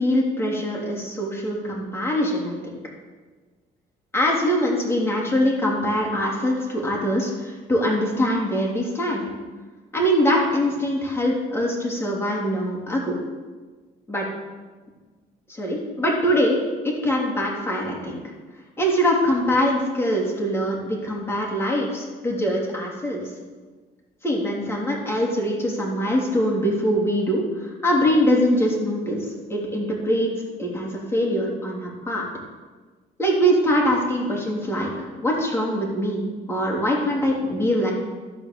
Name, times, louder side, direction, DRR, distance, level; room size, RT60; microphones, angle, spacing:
voice 1, 0.0-2.8 4.1-9.2 9.9-13.1 14.1-14.2 15.5-16.6 16.8-18.2 18.8-23.2 24.2-29.2 29.5-30.3 30.6-32.2 33.2-37.9, equal, 15° left, -3 dB, 3.2 m, -23 dB
13.5 x 4.9 x 6.9 m, 1.4 s
cardioid pair, 110°, 17 cm